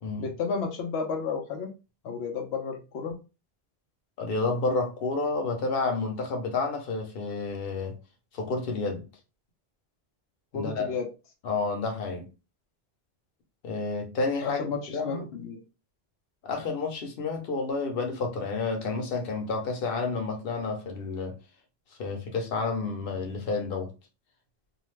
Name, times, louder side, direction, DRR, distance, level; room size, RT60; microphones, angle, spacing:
voice 1, 0.2-1.7 2.0-3.2 10.5-11.1 14.4-15.6, left 5 dB, 85° left, 0.9 m, -32 dB
voice 2, 4.2-8.0 8.3-9.0 10.5-10.9 11.4-12.3 13.6-14.7 14.9-15.2 16.4-21.4 22.0-23.9, left 3 dB, 65° left, 0.9 m, -30 dB
2.4 x 2.3 x 3.1 m
omnidirectional pair, 1.1 m